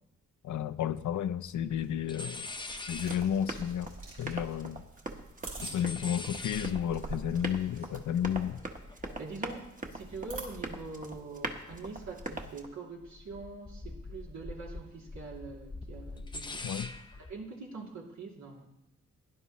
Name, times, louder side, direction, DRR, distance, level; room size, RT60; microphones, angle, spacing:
voice 1, 0.4-2.4 2.9-3.9 4.2-4.9 5.6-8.6 16.6-16.9, left 9 dB, 90° left, 0.6 m, -32 dB
sound 1, 1.1-1.2 1.4-1.8 2.1-4.9 5.2-11.4 11.7-12.7 13.0-17.3, left 2 dB, 15° left, 0.5 m, -45 dB
sound 2, 1.7-10.4, right 3 dB, 45° right, 4.7 m, -47 dB
Run, 3.0-12.7, right 2 dB, 30° right, 1.2 m, -42 dB
voice 2, 9.2-18.7, right 3 dB, 75° right, 2.8 m, -44 dB
17.0 x 11.0 x 3.1 m
wide cardioid pair, 115°, 29 cm